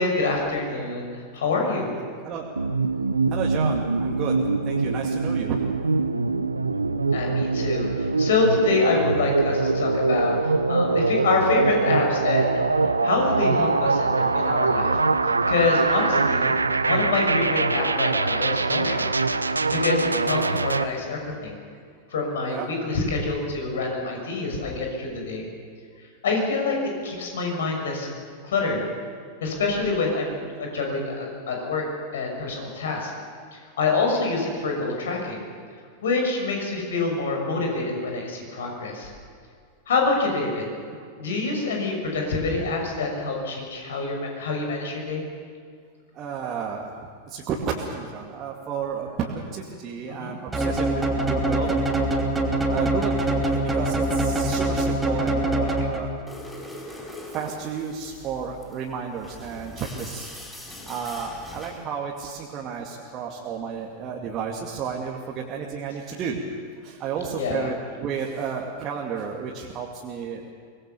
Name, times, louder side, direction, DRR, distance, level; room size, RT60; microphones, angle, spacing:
voice 1, 0.0-1.9 7.1-15.0 15.2-16.5 16.8-19.1 19.4-21.6 22.1-25.4 26.2-28.1 28.4-28.8 29.4-31.8 32.1-33.1 33.5-35.4 36.0-39.1 39.9-40.7 41.2-45.2 50.1-50.3 67.4-67.7, left 3 dB, 60° left, 1 dB, 6.2 m, -26 dB
sound 1, 2.6-20.8, right 3 dB, 80° right, 0.8 m, -23 dB
voice 2, 3.3-4.3 4.6-5.6 21.3-21.4 22.5-22.7 46.1-46.9 47.3-51.8 52.3-56.1 57.3-60.3 60.9-66.4 66.8-70.5, right 6 dB, 30° right, -2 dB, 2.4 m, -32 dB
sound 2, 50.5-56.3, right 1 dB, 10° right, 3.2 m, -24 dB
sound 3, 56.3-61.9, left 2 dB, 5° left, 7.2 m, -42 dB
24.5 x 21.0 x 7.1 m, 2.1 s
figure-of-eight pair, 90°, 0 cm